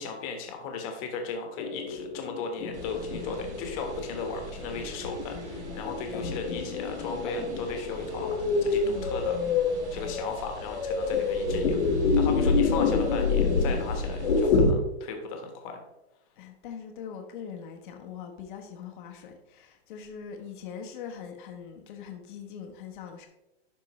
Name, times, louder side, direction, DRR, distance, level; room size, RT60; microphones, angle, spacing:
voice 1, 0.0-9.4 9.9-15.8, left 5 dB, 30° left, 1.4 m, -36 dB
sound 1, 1.6-14.7, left 4 dB, 80° left, 1.6 m, -27 dB
sound 2, 2.7-14.5, right 2 dB, 85° right, 2.1 m, -44 dB
voice 2, 16.4-23.3, left 7 dB, 50° left, 1.1 m, -42 dB
12.0 x 4.6 x 3.1 m
hypercardioid pair, 160°, 33 cm